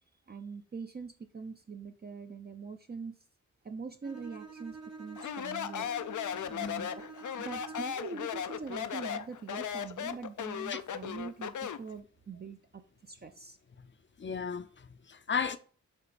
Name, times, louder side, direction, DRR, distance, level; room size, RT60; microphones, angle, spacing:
voice 1, 0.3-3.2 3.6-5.9 6.5-7.0 7.4-13.6, right 5 dB, 35° right, 0.5 m, -43 dB
Bowed string instrument, 4.0-8.1, right 5 dB, 60° right, 1.2 m, -48 dB
Speech, 5.2-11.9, left 9 dB, 85° left, 0.5 m, -37 dB
voice 2, 14.2-15.6, left 6 dB, 40° left, 0.5 m, -35 dB
7.2 x 3.8 x 4.1 m
wide cardioid pair, 125°, 29 cm